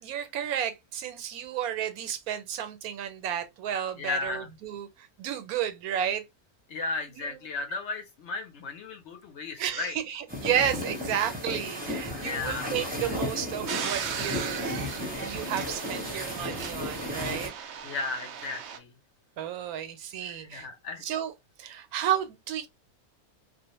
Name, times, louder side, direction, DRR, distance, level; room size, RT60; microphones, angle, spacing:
voice 1, 0.0-6.2 7.1-7.4 9.6-17.5 19.4-20.7 21.0-21.3 21.6-22.7, right 9 dB, 90° right, 1.1 m, -32 dB
voice 2, 4.0-4.5 6.7-10.0 12.2-12.7 17.8-18.9 20.2-21.0, left 4 dB, 60° left, 0.8 m, -35 dB
sound 1, 10.3-17.5, left 1 dB, 10° right, 0.5 m, -34 dB
sound 2, 13.7-18.8, right 7 dB, 65° right, 0.7 m, -37 dB
2.4 x 2.0 x 2.8 m
omnidirectional pair, 1.5 m